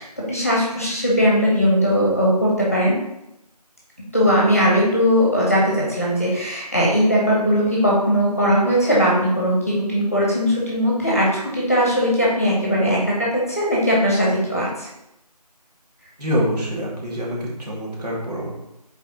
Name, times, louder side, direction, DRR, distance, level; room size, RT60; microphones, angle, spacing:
voice 1, 0.0-3.0 4.1-14.9, equal, 20° left, -5 dB, 1.2 m, -19 dB
voice 2, 16.2-18.5, equal, 75° right, -4 dB, 2.5 m, -25 dB
7.0 x 4.2 x 4.2 m, 0.88 s
figure-of-eight pair, 180°, 21 cm